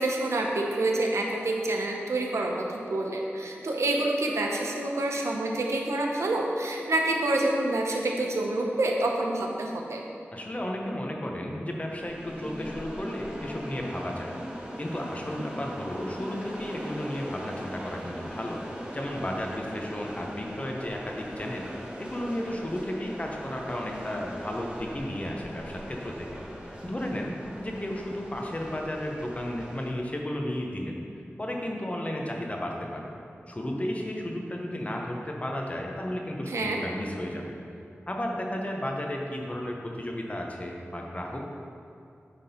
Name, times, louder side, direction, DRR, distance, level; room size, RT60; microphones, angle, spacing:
voice 1, 0.0-10.0 36.5-36.8, right 2 dB, 90° right, 0 dB, 0.8 m, -27 dB
voice 2, 10.3-14.3 14.8-18.6 18.9-21.7 22.0-27.3 27.6-31.0 31.4-33.1 33.5-37.4 38.1-41.5, left 1 dB, 30° left, 0 dB, 1.0 m, -33 dB
sound 1, 11.9-29.9, equal, 20° right, 1.1 m, -40 dB
9.2 x 3.7 x 4.3 m, 2.5 s
wide cardioid pair, 55°, 5 cm